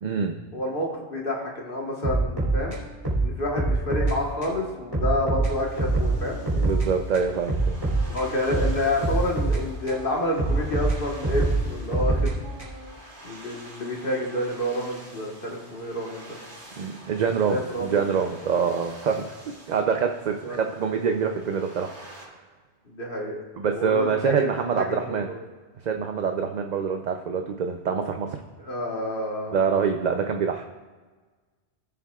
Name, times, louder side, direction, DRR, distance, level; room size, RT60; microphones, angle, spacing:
voice 1, 0.0-0.4 6.5-7.8 16.8-19.3 19.7-22.4 23.6-25.3 25.8-28.4 29.5-30.7, right 6 dB, 50° right, 5 dB, 0.6 m, -25 dB
voice 2, 0.5-2.8 3.2-6.4 8.1-12.3 13.2-16.4 17.5-17.9 18.5-18.7 20.4-20.6 22.9-23.4 23.7-24.5 24.7-25.2 28.6-29.5, left 1 dB, 55° left, -1 dB, 1.5 m, -29 dB
sound 1, 2.0-4.2 4.4-4.6 4.9-6.9 7.1-10.0 10.4-12.9, right 2 dB, 30° right, 2.7 m, -25 dB
sound 2, 5.4-22.3, right 1 dB, 90° right, 2.8 m, -47 dB
17.5 x 7.2 x 2.3 m, 1.4 s
omnidirectional pair, 1.1 m